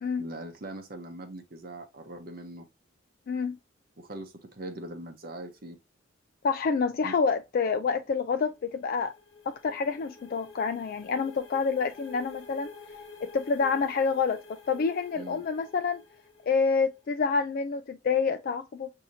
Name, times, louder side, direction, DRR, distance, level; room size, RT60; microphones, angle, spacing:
voice 1, 0.2-2.6 4.0-5.8 7.0-7.1 15.2-15.4, right 1 dB, 50° right, 0.7 m, -41 dB
voice 2, 3.3-3.6 6.4-9.1 9.5-12.7 13.2-14.4 14.7-16.0 16.5-18.9, left 5 dB, 50° left, 0.3 m, -28 dB
sound 1, 8.5-17.1, left 4 dB, 65° left, 1.3 m, -49 dB
6.3 x 2.8 x 2.7 m
head